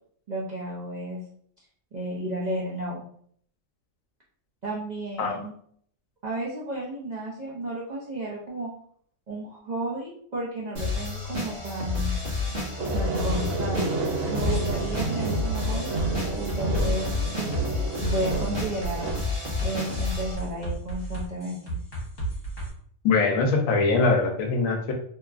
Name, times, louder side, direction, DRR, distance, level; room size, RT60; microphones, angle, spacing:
voice 1, 0.3-1.2 1.9-3.1 4.6-5.5 6.2-8.7 9.3-12.1 12.9-15.9 16.4-17.6 18.0-19.1 19.6-21.8, right 1 dB, 65° right, -5 dB, 0.4 m, -33 dB
sound 1, 10.8-20.4, left 3 dB, 50° right, 0.9 m, -31 dB
sound 2, 12.8-19.1, right 3 dB, 80° right, 1.1 m, -30 dB
sound 3, 14.4-22.7, right 2 dB, 50° left, 1.2 m, -33 dB
voice 2, 23.0-24.9, left 4 dB, 80° left, 3 dB, 1.0 m, -22 dB
2.8 x 2.3 x 2.4 m, 0.62 s
omnidirectional pair, 1.4 m